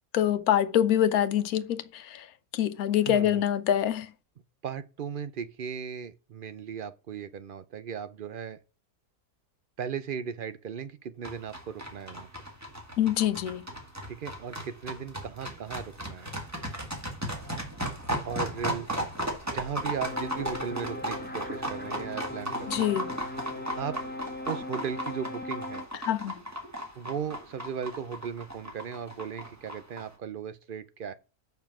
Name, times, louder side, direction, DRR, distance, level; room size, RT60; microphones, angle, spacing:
voice 1, 0.1-2.3 2.5-4.1 13.0-13.6 22.7-23.1 26.0-26.4, left 10 dB, 85° left, 1.2 m, -25 dB
voice 2, 3.0-3.5 4.6-8.6 9.8-12.3 14.1-16.3 18.2-18.9 19.4-23.0 23.8-24.0 24.5-25.8 27.0-31.1, right 7 dB, 55° right, 0.6 m, -37 dB
sound 1, 11.2-30.0, equal, 10° right, 1.9 m, -36 dB
sound 2, 20.0-25.9, left 1 dB, 10° left, 0.7 m, -39 dB
6.8 x 5.8 x 5.9 m
omnidirectional pair, 1.5 m